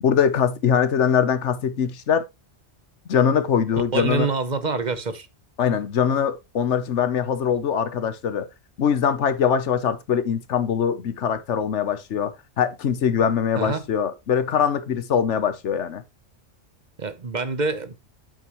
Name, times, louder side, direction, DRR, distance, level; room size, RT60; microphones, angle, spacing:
voice 1, 0.0-2.2 3.1-4.3 5.6-8.5 8.8-16.0, left 7 dB, 80° left, 1.3 m, -22 dB
voice 2, 3.9-5.3 13.6-13.8 17.0-17.9, right 4 dB, 40° right, 1.1 m, -26 dB
9.0 x 7.1 x 3.1 m
omnidirectional pair, 1.2 m